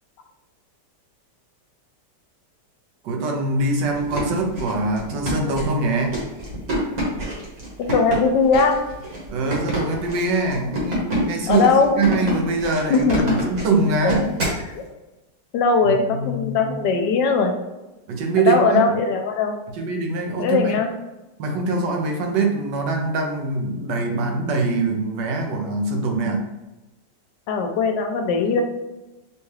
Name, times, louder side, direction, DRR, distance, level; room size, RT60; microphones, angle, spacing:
voice 1, 3.0-6.2 9.3-11.7 12.0-14.3 15.8-16.7 18.1-18.9 19.7-20.8 21.4-26.4, right 3 dB, 75° right, 2 dB, 1.3 m, -23 dB
sound 1, 3.9-14.6, right 1 dB, 60° right, 1.7 m, -28 dB
voice 2, 7.8-8.8 11.5-11.9 12.9-13.3 14.0-14.2 14.7-14.8 15.5-17.5 18.4-19.6 20.4-20.9 27.5-28.6, left 4 dB, 80° left, 4 dB, 1.2 m, -19 dB
5.4 x 2.3 x 3.2 m, 1.0 s
omnidirectional pair, 1.9 m